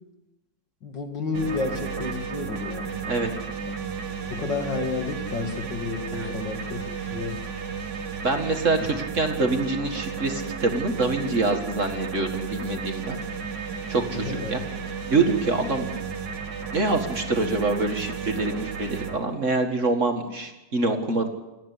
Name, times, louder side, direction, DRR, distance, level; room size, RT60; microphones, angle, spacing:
voice 1, 0.8-3.1 3.7-3.8 4.3-6.8 7.1-7.4 8.8-8.9 14.2-14.6 15.5-15.6, left 4 dB, 70° left, 4 dB, 3.0 m, -31 dB
sound 1, 1.3-19.2, right 5 dB, 65° right, 2.3 m, -33 dB
voice 2, 8.2-13.2 13.9-14.6 15.1-15.9 16.7-21.3, right 3 dB, 40° right, 5 dB, 2.2 m, -25 dB
28.5 x 10.5 x 9.7 m, 1.0 s
omnidirectional pair, 2.0 m